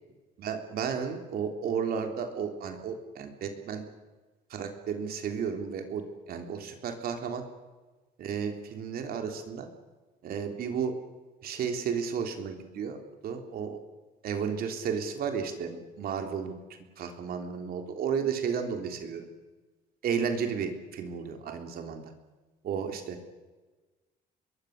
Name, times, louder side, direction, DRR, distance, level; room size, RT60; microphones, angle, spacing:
voice 1, 0.4-3.8 4.5-7.4 8.2-9.7 10.2-10.9 11.4-13.0 13.2-13.8 14.2-16.6 17.0-19.3 20.0-22.0 22.6-23.2, right 6 dB, 65° right, 5 dB, 3.5 m, -33 dB
25.0 x 21.5 x 6.7 m, 1.2 s
cardioid pair, 110°, 17 cm